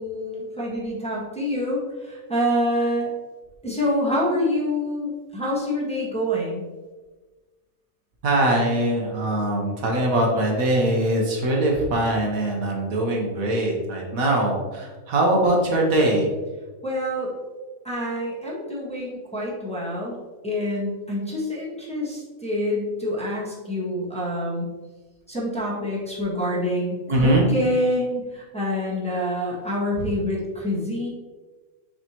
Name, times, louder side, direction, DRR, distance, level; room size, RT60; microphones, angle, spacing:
voice 1, 0.0-3.1 3.6-6.6 16.8-17.3 17.8-20.1 20.4-24.7 25.3-31.1, left 1 dB, 5° left, -6 dB, 1.6 m, -26 dB
voice 2, 8.2-16.3 27.1-27.5, right 1 dB, 80° right, -1 dB, 1.6 m, -22 dB
6.8 x 5.2 x 3.0 m, 1.3 s
omnidirectional pair, 1.4 m